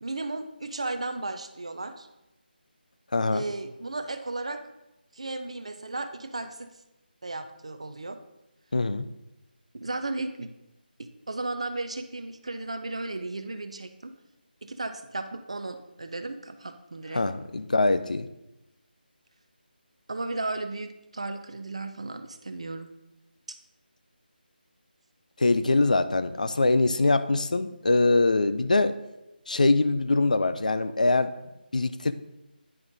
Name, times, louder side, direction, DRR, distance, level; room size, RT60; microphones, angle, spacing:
voice 1, 0.0-2.1 3.3-4.6 5.1-6.7 7.2-8.2 9.7-10.5 11.0-14.1 14.6-17.2 20.1-22.9, right 2 dB, 35° right, 9 dB, 0.4 m, -35 dB
voice 2, 3.1-3.4 8.7-9.1 17.1-18.3 25.4-28.9 29.5-31.3 31.7-32.1, left 2 dB, 50° left, 12 dB, 0.3 m, -23 dB
9.7 x 3.6 x 3.9 m, 0.94 s
figure-of-eight pair, 180°, 5 cm